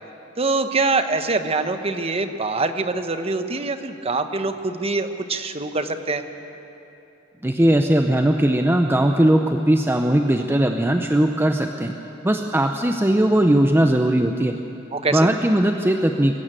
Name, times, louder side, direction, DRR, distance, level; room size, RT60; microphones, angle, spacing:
voice 1, 0.4-6.2 14.9-15.3, right 3 dB, 30° right, 8 dB, 1.0 m, -24 dB
voice 2, 7.4-11.9 12.2-14.5 15.1-16.4, right 1 dB, 10° right, 5 dB, 0.6 m, -19 dB
22.5 x 13.5 x 9.0 m, 2.9 s
head